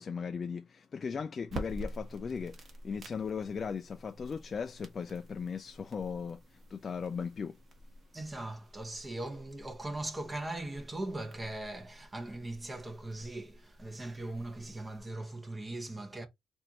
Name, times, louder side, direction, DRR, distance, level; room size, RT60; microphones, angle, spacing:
voice 1, 0.0-7.6, left 6 dB, 40° left, 0.3 m, -38 dB
sound 1, 1.4-15.0, right 2 dB, 45° right, 1.2 m, -49 dB
voice 2, 8.1-16.3, right 2 dB, 20° right, 1.0 m, -40 dB
4.4 x 2.6 x 2.9 m
cardioid pair, 90°, 0 cm